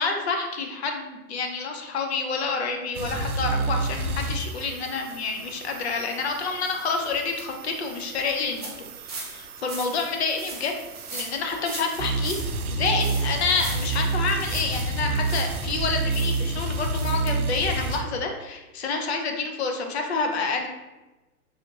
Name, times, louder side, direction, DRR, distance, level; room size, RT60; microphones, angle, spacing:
voice 1, 0.0-10.7 11.1-12.4 12.7-20.7, left 4 dB, 45° left, 3 dB, 0.5 m, -28 dB
sound 1, 3.0-18.0, right 3 dB, 75° right, 0.6 m, -30 dB
sound 2, 3.6-3.7 4.2-4.3 4.8-4.9 5.4-5.5 6.0-6.2 6.6-6.8 7.1-7.4 7.9-8.0 8.6-15.7 16.1-17.3 17.6-17.7 18.0-18.1, right 3 dB, 30° right, 0.4 m, -40 dB
3.4 x 2.5 x 2.7 m, 1.1 s
hypercardioid pair, 150°, 44 cm